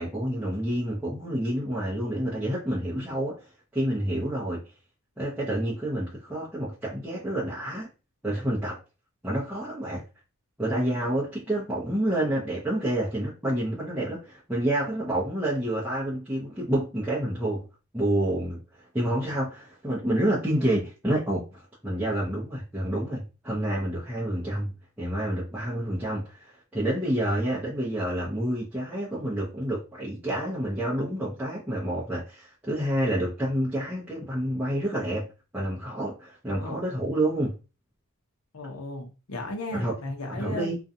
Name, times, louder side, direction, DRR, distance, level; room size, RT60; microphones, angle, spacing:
voice 1, 0.0-3.4 3.7-4.6 5.2-7.9 8.2-8.8 9.2-10.0 10.6-17.6 17.9-35.3 35.5-37.6 39.7-39.9 40.3-40.8, right 1 dB, 5° right, 0.6 m, -28 dB
voice 2, 36.5-36.8 38.5-40.7, left 2 dB, 75° left, 0.7 m, -36 dB
2.5 x 2.2 x 2.6 m
head